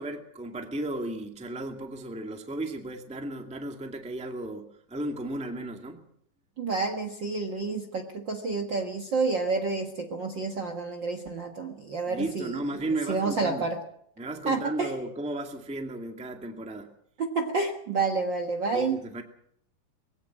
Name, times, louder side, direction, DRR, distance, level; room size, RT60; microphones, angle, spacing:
voice 1, 0.0-6.0 12.1-13.7 14.2-16.9 18.7-19.2, right 2 dB, 5° right, 4 dB, 1.3 m, -34 dB
voice 2, 6.6-12.6 13.1-13.8 14.4-14.9 17.2-19.0, right 4 dB, 45° right, 4 dB, 1.6 m, -29 dB
22.0 x 16.5 x 7.4 m, 0.69 s
omnidirectional pair, 3.8 m